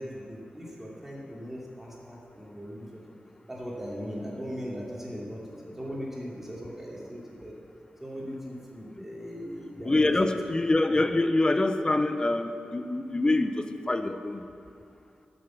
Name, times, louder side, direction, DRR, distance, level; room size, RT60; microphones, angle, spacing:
voice 1, 0.0-3.0 3.5-7.5 8.0-10.5 10.9-11.0, equal, 10° right, -4 dB, 2.7 m, -39 dB
voice 2, 9.8-14.4, left 2 dB, 25° left, 8 dB, 0.7 m, -25 dB
12.0 x 6.8 x 7.2 m, 2.6 s
wide cardioid pair, 100°, 3 cm